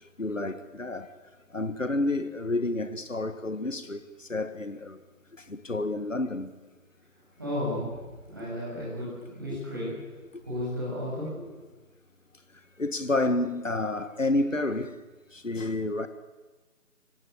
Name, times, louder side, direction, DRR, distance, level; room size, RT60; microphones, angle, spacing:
voice 1, 0.2-1.1 1.5-5.0 5.3-6.5 8.4-8.5 12.8-15.0 15.3-16.1, left 2 dB, 55° left, 1.8 m, -29 dB
voice 2, 7.4-9.1 9.3-9.9 10.4-11.4, left 1 dB, 15° right, 7.1 m, -33 dB
27.0 x 22.0 x 8.3 m
figure-of-eight pair, 175°, 45 cm